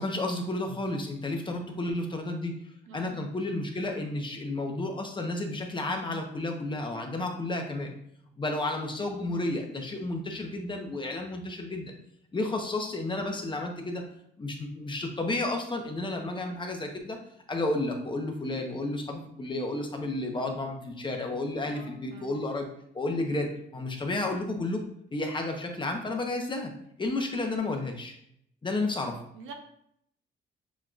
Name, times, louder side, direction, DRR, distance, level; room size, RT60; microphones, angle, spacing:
voice 1, 0.0-2.6 2.9-7.9 8.4-11.9 12.3-14.0 14.4-17.2 17.5-22.7 22.9-24.8 25.1-26.7 27.0-28.1 28.6-29.2, left 2 dB, 25° left, 2 dB, 0.9 m, -32 dB
voice 2, 2.9-3.3 21.6-22.4 29.3-29.5, right 4 dB, 80° right, 3 dB, 0.9 m, -47 dB
7.4 x 2.9 x 2.4 m, 0.72 s
cardioid pair, 90°, 20 cm